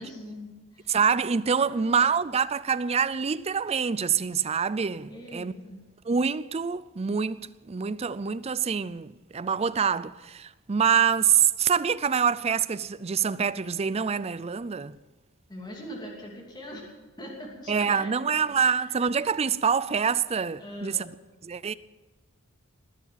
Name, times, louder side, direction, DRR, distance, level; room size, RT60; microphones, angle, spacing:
voice 1, 0.0-0.9 1.6-2.1 5.1-5.8 15.5-18.2 18.5-18.8 20.6-21.2, equal, 20° left, 2.9 m, -42 dB
voice 2, 0.9-5.5 6.1-15.0 17.7-21.1 21.4-21.7, right 6 dB, 30° right, 0.4 m, -26 dB
20.5 x 7.1 x 9.0 m
head